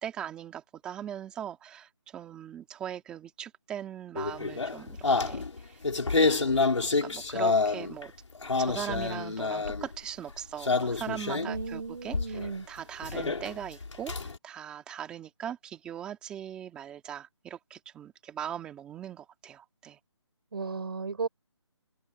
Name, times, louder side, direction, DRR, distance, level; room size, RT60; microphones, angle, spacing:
voice 1, 0.0-5.8 6.2-6.6 7.0-8.1 8.6-20.0, right 9 dB, 5° right, 2.4 m, -40 dB
sound 1, 4.1-8.0 8.3-9.9 10.6-11.7 12.1-12.5 13.0-14.4, left 4 dB, 80° left, 5.4 m, -28 dB
voice 2, 11.3-12.7 20.5-21.3, right 4 dB, 50° right, 6.2 m, -35 dB
hypercardioid pair, 175°, 16 cm